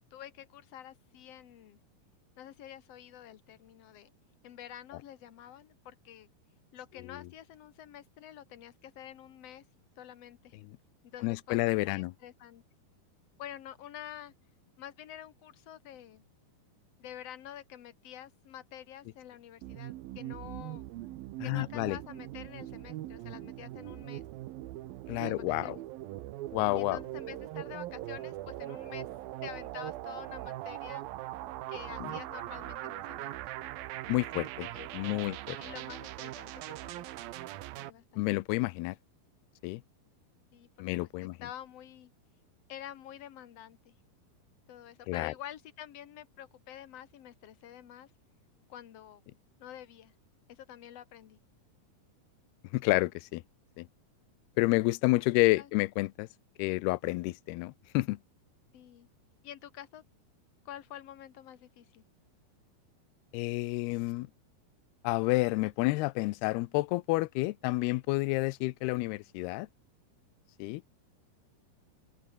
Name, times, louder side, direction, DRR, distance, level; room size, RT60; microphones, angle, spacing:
voice 1, 0.1-1.8 2.4-4.1 4.4-6.3 6.7-9.6 10.0-10.5 11.0-11.6 11.8-12.6 13.4-14.3 14.8-16.2 17.0-20.8 21.4-24.2 25.2-25.8 26.7-29.1 29.4-31.0 31.7-33.3 34.7-37.1 37.7-38.3 40.5-40.9 41.2-42.1 42.7-43.9 44.7-48.1 48.7-49.2 49.6-50.1 50.5-51.4 55.6-55.7 58.7-59.1 59.4-60.0 60.6-62.0, left 11 dB, 65° left, 1.6 m, -48 dB
voice 2, 11.2-12.1 21.4-22.0 25.1-25.8 26.5-27.0 32.0-32.1 34.1-34.7 34.9-35.6 38.2-39.0 39.6-39.8 40.8-41.3 45.1-45.3 52.7-53.4 53.8-53.9 54.6-56.3 56.6-58.2 63.3-64.3 65.0-69.7 70.6-70.8, left 21 dB, 90° left, 2.7 m, -29 dB
sound 1, 19.6-37.9, right 15 dB, 75° right, 2.7 m, -41 dB
open air
omnidirectional pair, 4.5 m